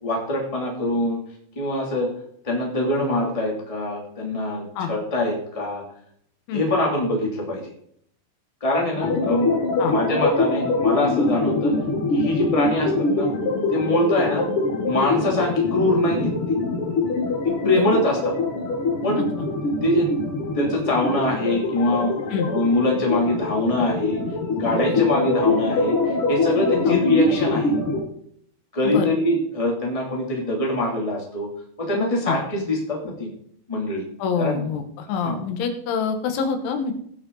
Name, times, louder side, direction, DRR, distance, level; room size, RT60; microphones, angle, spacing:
voice 1, 0.0-1.2 1.5-2.1 2.4-5.8 6.5-7.6 8.6-9.5 9.9-11.7 12.1-13.3 13.7-14.4 14.8-16.3 17.4-18.3 19.0-19.2 19.8-20.1 20.5-22.1 22.4-24.2 24.5-27.7 28.7-31.5 31.8-33.3 33.7-34.0 34.4-34.6 35.2-35.4, left 1 dB, 15° left, -1 dB, 1.5 m, -23 dB
sound 1, 9.0-28.0, left 3 dB, 65° left, 1.4 m, -24 dB
voice 2, 34.2-36.9, left 6 dB, 85° left, 6 dB, 3.8 m, -26 dB
18.5 x 6.5 x 3.9 m, 0.65 s
omnidirectional pair, 5.3 m